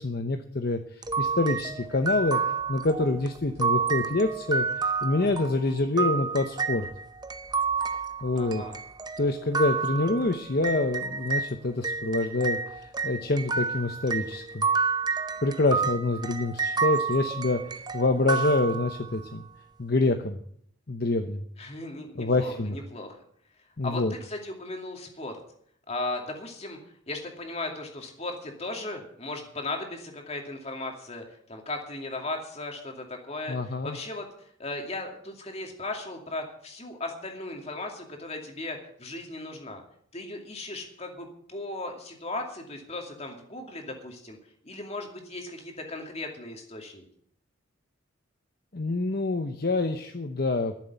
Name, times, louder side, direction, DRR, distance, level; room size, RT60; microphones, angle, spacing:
voice 1, 0.0-2.4 2.7-6.9 8.2-8.6 9.2-14.7 15.4-19.4 19.8-20.4 20.9-21.4 22.2-22.8 23.8-24.1 33.5-34.0 48.7-50.7, left 2 dB, 50° left, 7 dB, 0.8 m, -26 dB
sound 1, 1.0-11.5 11.8-19.2, right 5 dB, 20° right, 0.6 m, -30 dB
voice 2, 8.3-8.8 21.6-23.2 23.8-25.4 25.9-26.8 27.1-39.8 40.1-44.4 44.6-47.1, left 2 dB, 30° left, 2 dB, 2.5 m, -37 dB
13.0 x 7.4 x 9.3 m, 0.66 s
head